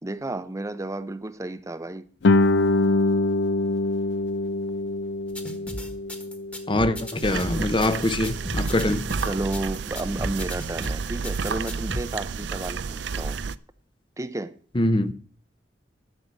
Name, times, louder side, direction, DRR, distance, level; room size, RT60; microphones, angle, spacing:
voice 1, 0.0-2.1 7.3-7.7 9.3-13.4 14.2-14.6, right 2 dB, 20° right, 0.6 m, -32 dB
Guitar, 2.2-7.6, left 2 dB, 75° left, 0.5 m, -24 dB
sound 1, 5.3-12.0, equal, 10° left, 1.4 m, -35 dB
voice 2, 6.7-9.1 14.7-15.1, left 1 dB, 30° left, 0.7 m, -23 dB
sound 2, 7.2-13.6, right 5 dB, 75° right, 0.5 m, -31 dB
11.0 x 6.8 x 7.4 m
head